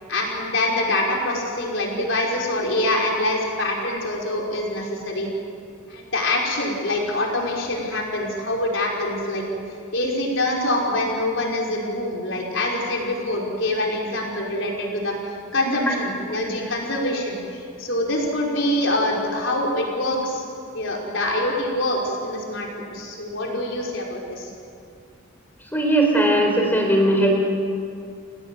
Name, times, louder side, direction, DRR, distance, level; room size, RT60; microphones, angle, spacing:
voice 1, 0.1-5.3 5.9-9.4 9.9-20.4 20.7-24.5, left 1 dB, 60° left, -1 dB, 5.3 m, -25 dB
voice 2, 25.7-27.3, right 1 dB, 10° left, 1 dB, 4.4 m, -18 dB
29.5 x 17.5 x 7.9 m, 2.4 s
head